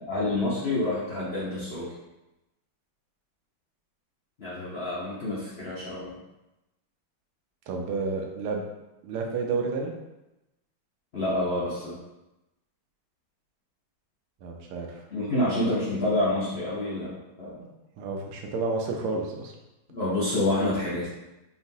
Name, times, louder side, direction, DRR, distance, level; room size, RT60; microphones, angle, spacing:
voice 1, 0.1-1.9 4.4-6.2 11.1-12.0 15.1-17.6 19.9-21.1, left 1 dB, 75° left, -8 dB, 0.5 m, -28 dB
voice 2, 7.7-8.6 9.0-9.9 14.4-15.0 17.6-17.7 18.0-19.5, right 4 dB, 80° right, 1 dB, 1.5 m, -30 dB
4.9 x 2.9 x 2.7 m, 0.96 s
omnidirectional pair, 2.3 m